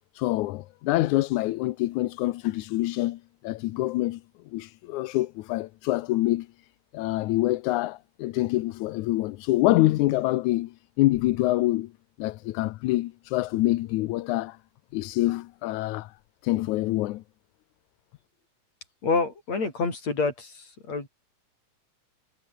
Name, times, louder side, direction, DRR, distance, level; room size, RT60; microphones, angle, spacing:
voice 1, 0.1-4.2 4.5-6.5 6.9-11.9 12.2-14.6 14.9-16.1 16.4-17.2, left 17 dB, 85° left, 2.2 m, -26 dB
voice 2, 19.0-21.1, left 4 dB, 65° left, 7.2 m, -27 dB
omnidirectional pair, 3.3 m